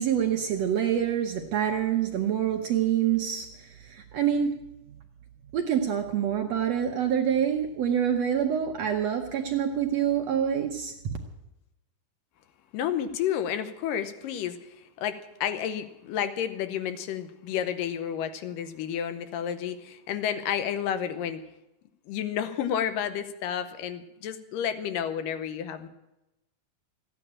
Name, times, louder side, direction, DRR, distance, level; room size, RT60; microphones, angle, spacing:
voice 1, 0.0-4.5 5.5-10.9, right 9 dB, 65° right, 3 dB, 1.7 m, -26 dB
voice 2, 12.7-21.4 22.1-25.9, left 9 dB, 80° left, 11 dB, 2.5 m, -31 dB
14.5 x 10.0 x 8.7 m, 0.92 s
omnidirectional pair, 4.0 m